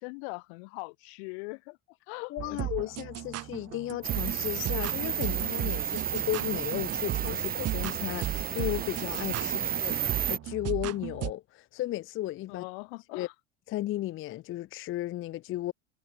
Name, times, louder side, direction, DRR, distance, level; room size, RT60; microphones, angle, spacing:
voice 1, 0.0-2.9 7.4-7.5 9.4-9.7 12.5-13.3, left 35 dB, 55° left, 0.9 m, -42 dB
voice 2, 2.3-12.6 13.1-13.3 13.7-15.7, left 15 dB, 35° left, 0.6 m, -34 dB
sound 1, 2.4-11.3, right 14 dB, 40° right, 1.7 m, -36 dB
sound 2, 4.0-10.4, right 9 dB, 25° right, 0.8 m, -32 dB
hypercardioid pair, 75°, 37 cm